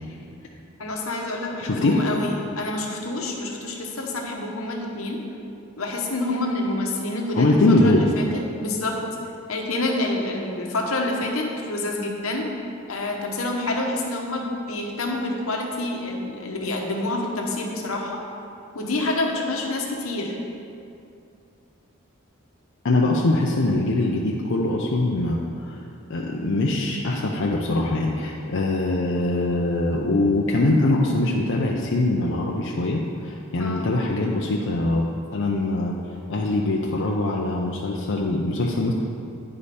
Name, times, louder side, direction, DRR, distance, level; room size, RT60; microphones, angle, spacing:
voice 1, 0.8-5.2 5.8-7.5 7.8-8.9 9.5-12.5 12.9-18.2 18.7-20.4 33.6-33.9, left 2 dB, 80° left, 0 dB, 1.1 m, -27 dB
voice 2, 1.6-2.0 7.3-8.1 22.8-25.8 26.1-35.0 35.3-36.0 36.3-38.9, left 2 dB, 60° left, -2 dB, 0.6 m, -22 dB
9.7 x 5.0 x 4.2 m, 2.6 s
head